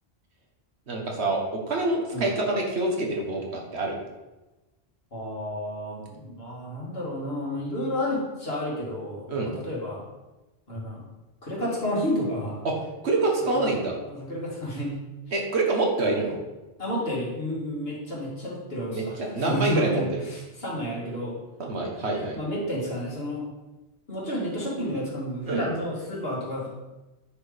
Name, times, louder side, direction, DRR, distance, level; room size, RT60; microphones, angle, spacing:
voice 1, 0.9-4.0 9.3-9.5 12.6-12.7 13.0-14.0 15.3-16.4 18.9-20.2 21.6-22.4 25.5-25.7, right 2 dB, 75° right, 0 dB, 1.7 m, -26 dB
voice 2, 5.1-10.0 10.7-11.1 11.4-12.6 13.4-15.0 16.8-21.4 22.3-23.5 24.1-26.7, equal, 60° left, -5 dB, 2.8 m, -31 dB
9.4 x 4.6 x 5.2 m, 1.1 s
omnidirectional pair, 1.1 m